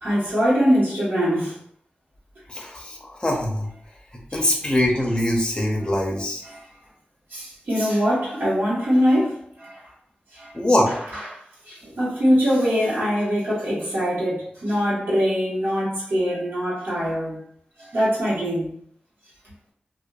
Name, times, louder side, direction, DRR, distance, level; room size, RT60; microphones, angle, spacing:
voice 1, 0.0-1.6 4.3-4.5 6.4-6.6 7.3-9.8 10.3-10.5 10.9-11.4 11.7-17.4 17.8-18.7, equal, 70° right, -9 dB, 1.1 m, -23 dB
voice 2, 2.5-3.7 4.3-6.4 10.5-10.9, left 1 dB, 25° left, -2 dB, 0.6 m, -22 dB
2.6 x 2.2 x 2.3 m, 0.63 s
wide cardioid pair, 90°, 4 cm